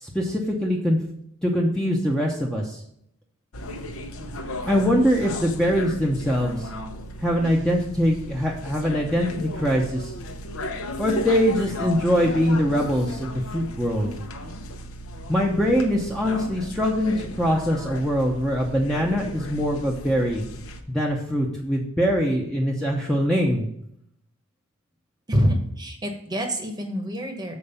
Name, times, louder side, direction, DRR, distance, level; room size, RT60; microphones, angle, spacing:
voice 1, 0.0-1.0 1.4-2.8 4.6-6.7 7.2-10.1 11.0-14.1 15.3-20.5 20.9-23.7, equal, 5° left, -2 dB, 0.8 m, -23 dB
sound 1, 3.5-20.8, left 1 dB, 75° left, 0.9 m, -35 dB
voice 2, 25.3-27.5, equal, 20° right, 4 dB, 1.0 m, -26 dB
7.1 x 4.6 x 6.7 m, 0.72 s
head